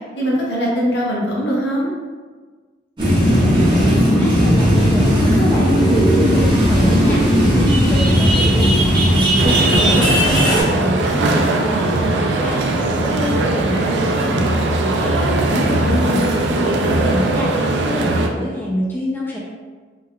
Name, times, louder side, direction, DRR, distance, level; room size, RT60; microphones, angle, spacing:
voice 1, 0.2-1.9 9.3-10.1 15.5-16.3, equal, 75° left, -4 dB, 0.7 m, -21 dB
sound 1, 3.0-10.6, equal, 25° right, 0.6 m, -15 dB
voice 2, 3.2-19.4, equal, 10° left, -5 dB, 0.3 m, -27 dB
sound 2, 9.4-18.3, right 2 dB, 75° right, 0.3 m, -19 dB
3.3 x 2.2 x 2.2 m, 1.4 s
head